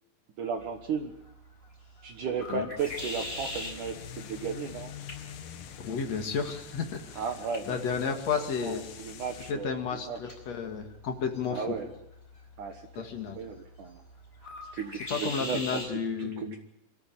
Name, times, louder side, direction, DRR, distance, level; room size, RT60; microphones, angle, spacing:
voice 1, 0.4-1.1 2.0-4.9 7.2-7.8 8.6-10.2 11.5-11.9 12.6-13.1 13.4-14.0 14.7-15.9 16.2-16.6, right 6 dB, 85° right, 5 dB, 1.8 m, -35 dB
sound 1, 0.6-15.9, left 2 dB, 15° left, 4.4 m, -44 dB
sound 2, 2.8-9.5, left 9 dB, 65° left, 2.1 m, -45 dB
voice 2, 5.8-7.2 7.7-8.9 9.5-11.8 13.0-13.4 15.1-16.6, left 6 dB, 50° left, 5 dB, 2.1 m, -32 dB
24.5 x 14.0 x 9.0 m, 0.84 s
omnidirectional pair, 5.7 m